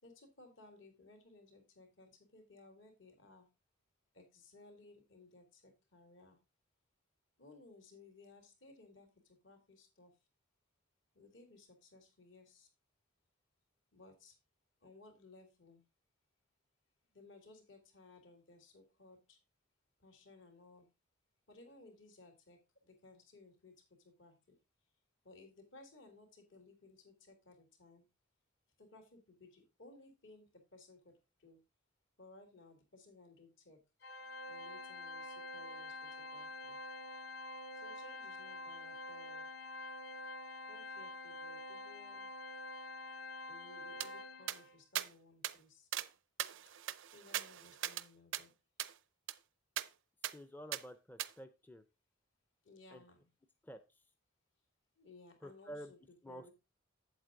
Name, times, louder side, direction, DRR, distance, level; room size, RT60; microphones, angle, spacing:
voice 1, 0.0-3.5 4.1-6.4 7.4-10.1 11.1-12.7 13.9-14.4 14.8-15.8 17.1-19.4 20.0-20.9 21.5-24.6 25.2-28.0 28.8-31.1 31.4-31.6 32.2-33.8 34.5-36.8 37.7-39.5 40.7-42.3 43.5-45.9 46.6-46.7 47.1-48.5 52.6-53.3 55.0-56.5, left 2 dB, 70° left, 4 dB, 3.1 m, -60 dB
Organ, 34.0-44.8, left 2 dB, 55° left, 0.9 m, -47 dB
sound 1, 44.0-44.1 44.5-44.6 45.0-45.1 45.4-45.6 45.9-46.1 46.4-48.1 48.3-48.4 48.8-48.9 49.3-49.4 49.8-49.9 50.2-50.4 50.7-50.8 51.2-51.3, right 12 dB, 70° right, 0.5 m, -40 dB
voice 2, 50.3-51.8 52.9-53.0 53.7-53.8 55.4-55.9 56.2-56.5, equal, 10° left, 10 dB, 0.5 m, -49 dB
8.1 x 8.0 x 3.8 m, 0.27 s
head